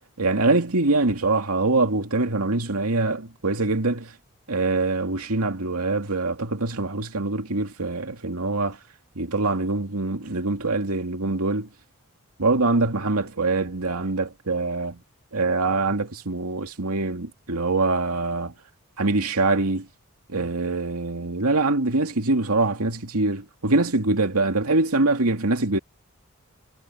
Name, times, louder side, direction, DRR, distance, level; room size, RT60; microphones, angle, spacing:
voice 1, 0.2-4.1 4.5-8.8 9.2-11.7 12.4-15.0 15.3-18.5 19.0-19.9 20.3-25.8, right 3 dB, 85° right, 2.4 m, -24 dB
head